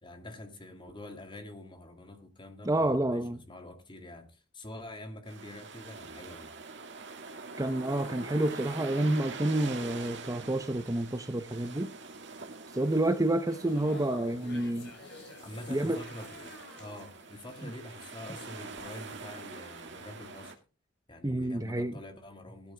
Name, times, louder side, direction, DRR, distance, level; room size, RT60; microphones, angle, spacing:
voice 1, 0.0-6.6 15.4-16.5 16.8-20.6 21.1-22.7, left 1 dB, 25° left, 2.4 m, -46 dB
voice 2, 2.6-3.4 7.6-11.9 12.7-14.9 15.7-16.0 21.2-21.9, right 1 dB, 20° right, 0.8 m, -29 dB
sound 1, 5.3-20.5, right 4 dB, 65° right, 2.1 m, -45 dB
sound 2, 13.3-19.5 19.8-20.1, left 2 dB, 65° left, 5.4 m, -50 dB
18.0 x 13.0 x 2.3 m
head